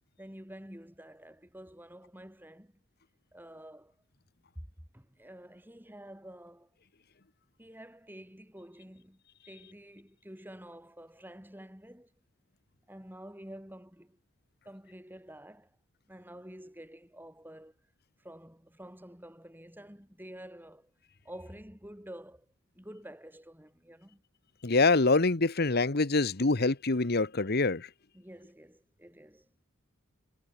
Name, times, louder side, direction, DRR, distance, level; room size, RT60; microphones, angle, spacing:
voice 1, 0.2-2.8 3.3-4.0 4.5-4.6 4.9-6.7 7.6-9.2 9.5-12.1 12.9-14.2 14.6-15.7 16.1-17.8 18.2-20.9 21.2-22.5 22.8-24.2 28.1-29.5, equal, 10° right, 7.8 m, -49 dB
voice 2, 24.6-27.9, left 3 dB, 50° left, 1.1 m, -25 dB
head